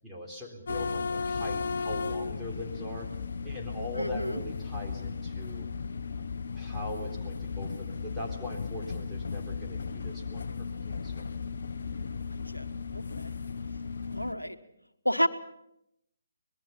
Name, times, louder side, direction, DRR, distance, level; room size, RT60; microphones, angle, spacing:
voice 1, 0.0-3.1 3.4-5.7 6.5-11.3, left 1 dB, 5° right, -3 dB, 3.8 m, -41 dB
sound 1, 0.7-14.3, left 5 dB, 55° left, 0.9 m, -35 dB
voice 2, 3.9-4.4 12.5-12.7 12.9-13.3 14.1-14.6 15.0-15.3, equal, 90° left, 9 dB, 1.3 m, -30 dB
25.0 x 20.5 x 5.7 m, 0.81 s
figure-of-eight pair, 140°, 0 cm